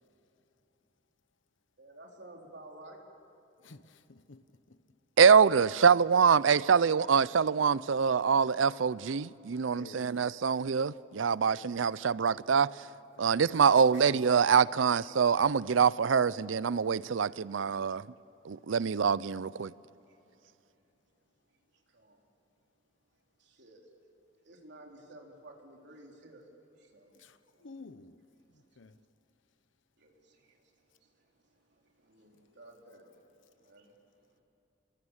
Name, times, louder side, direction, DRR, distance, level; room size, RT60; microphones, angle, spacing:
voice 1, 1.8-3.0 20.1-20.2 21.9-22.3 23.4-23.9 24.4-26.5 26.8-27.2 27.6-27.9 28.4-28.8 30.0-34.4, right 1 dB, 65° right, 3.7 m, -54 dB
voice 2, 3.6-4.4 4.7-4.8 9.7-10.1 11.4-11.6 13.3-14.2 27.2-28.2 28.8-28.9, left 3 dB, 80° left, 1.0 m, -49 dB
voice 3, 5.2-12.7 13.2-18.0 18.5-19.7, right 6 dB, 90° right, 0.5 m, -25 dB
29.0 x 22.5 x 7.3 m
head